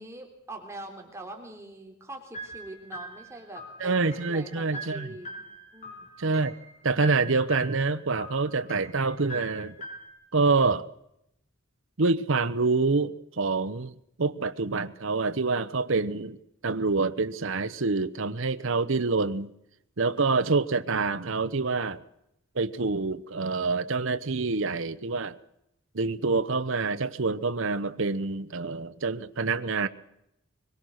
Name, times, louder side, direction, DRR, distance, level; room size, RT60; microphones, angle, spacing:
voice 1, 0.0-5.4 5.7-6.1, right 2 dB, 15° right, 2 dB, 3.5 m, -43 dB
sound 1, 2.3-10.1, right 1 dB, 35° left, 7.8 m, -42 dB
voice 2, 3.8-5.1 6.2-6.5 6.8-9.7 10.3-10.9 12.0-16.4 16.6-19.5 20.0-22.0 22.6-25.4 25.9-29.9, right 3 dB, 65° right, 11 dB, 0.9 m, -26 dB
24.5 x 22.0 x 6.5 m, 0.79 s
head